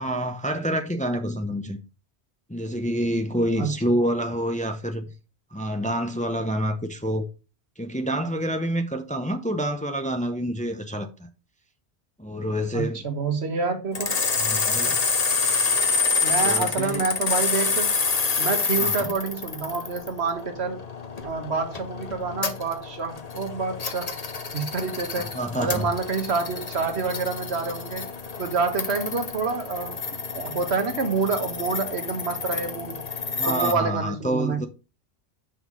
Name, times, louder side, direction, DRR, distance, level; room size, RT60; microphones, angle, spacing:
voice 1, 0.0-1.8 2.5-5.1 5.5-7.2 7.8-11.3 12.2-13.1 14.4-15.0 16.4-17.0 18.8-19.1 25.2-25.9 33.4-34.7, equal, 10° left, 0.7 m, -27 dB
voice 2, 12.7-14.1 16.2-17.9 18.4-20.8 21.2-24.1 24.5-25.3 25.6-28.1 28.4-30.0 30.3-33.0 33.5-34.6, right 4 dB, 75° right, 1.5 m, -27 dB
sound 1, 13.9-33.7, left 4 dB, 40° left, 0.9 m, -28 dB
6.3 x 5.6 x 4.8 m
omnidirectional pair, 1.1 m